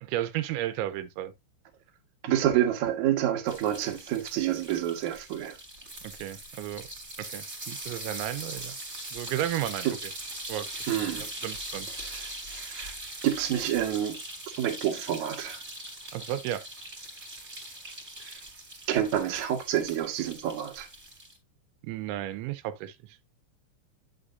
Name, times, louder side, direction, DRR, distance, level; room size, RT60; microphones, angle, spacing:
voice 1, 0.0-1.3 6.0-6.9 7.2-8.8 9.1-9.9 10.5-11.9 16.1-16.7 21.8-23.0, right 13 dB, 85° right, 3.0 m, -33 dB
voice 2, 2.2-5.6 9.8-9.9 10.9-11.3 12.0-13.0 13.2-14.2 14.6-15.6 18.2-18.4 18.9-20.9, right 11 dB, 65° right, 1.9 m, -28 dB
sound 1, 3.5-21.4, right 1 dB, 20° right, 2.9 m, -41 dB
9.8 x 5.6 x 2.6 m
omnidirectional pair, 5.3 m